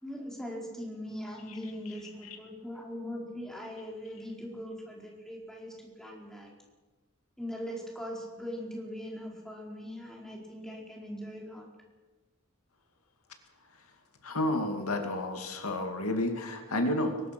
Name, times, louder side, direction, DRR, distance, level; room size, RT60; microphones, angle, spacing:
voice 1, 0.0-6.5 7.4-11.7, equal, ahead, -1 dB, 4.6 m, -40 dB
voice 2, 1.5-2.4 14.2-17.2, left 1 dB, 75° left, 5 dB, 2.3 m, -32 dB
23.0 x 20.0 x 6.0 m, 1.2 s
head